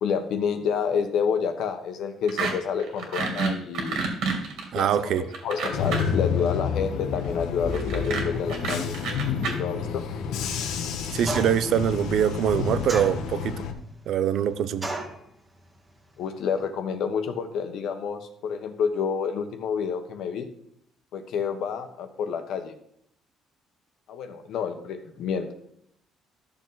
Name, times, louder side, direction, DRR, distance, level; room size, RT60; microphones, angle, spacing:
voice 1, 0.0-4.0 4.7-9.0 9.5-10.0 16.2-20.5 21.1-22.7 24.1-25.5, left 6 dB, 65° left, 1.4 m, -29 dB
sound 1, 2.3-2.5 2.8-6.2 7.7-9.5, right 4 dB, 80° right, 2.9 m, -28 dB
voice 2, 4.7-5.2 11.1-13.6 14.1-14.9, right 9 dB, 60° right, 0.7 m, -24 dB
Bus / Engine, 5.7-13.7, left 6 dB, 85° left, 1.4 m, -29 dB
sound 2, 11.2-11.7 12.9-13.6 14.8-15.2, right 1 dB, 15° right, 1.7 m, -32 dB
13.0 x 6.9 x 4.0 m
cardioid pair, 155°, 0 cm